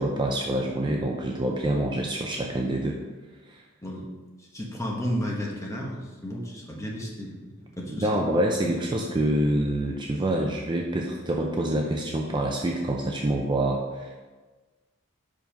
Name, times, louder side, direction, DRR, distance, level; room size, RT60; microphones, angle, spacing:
voice 1, 0.0-2.9 3.5-3.6 7.9-14.2, right 1 dB, 20° right, 0 dB, 0.5 m, -26 dB
voice 2, 4.5-8.1, equal, 15° left, -2 dB, 1.1 m, -33 dB
5.3 x 5.1 x 5.1 m, 1.3 s
head